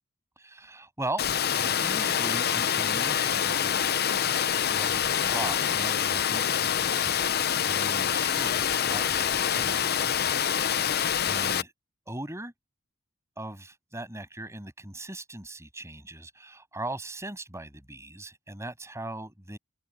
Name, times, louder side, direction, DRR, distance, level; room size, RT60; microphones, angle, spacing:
voice 1, 0.4-1.2 1.5-4.0 4.7-10.4 10.8-11.7 12.1-12.5 13.4-19.6, right 2 dB, 15° right, 7.4 m, -39 dB
Water, 1.2-11.6, left 9 dB, 50° left, 0.7 m, -26 dB
head